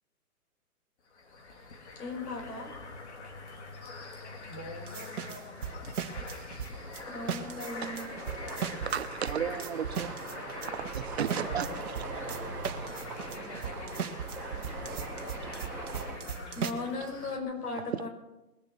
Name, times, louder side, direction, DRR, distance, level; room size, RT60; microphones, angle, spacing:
sound 1, 1.1-17.4, left 3 dB, 45° left, 2.4 m, -45 dB
voice 1, 2.0-2.7 7.1-8.1 16.6-18.1, left 3 dB, 70° left, 5.1 m, -37 dB
voice 2, 4.2-5.8 11.2-12.6 13.2-14.1 14.7-17.1, left 1 dB, 25° left, 2.6 m, -48 dB
sound 2, 4.9-7.0 7.3-16.7, right 7 dB, 65° right, 1.6 m, -37 dB
sound 3, 6.7-16.2, right 3 dB, 5° right, 2.2 m, -42 dB
voice 3, 8.8-10.2 10.7-11.7 14.6-14.7 17.9-18.1, right 8 dB, 45° right, 0.7 m, -34 dB
21.0 x 7.4 x 7.0 m
hypercardioid pair, 165°, 47 cm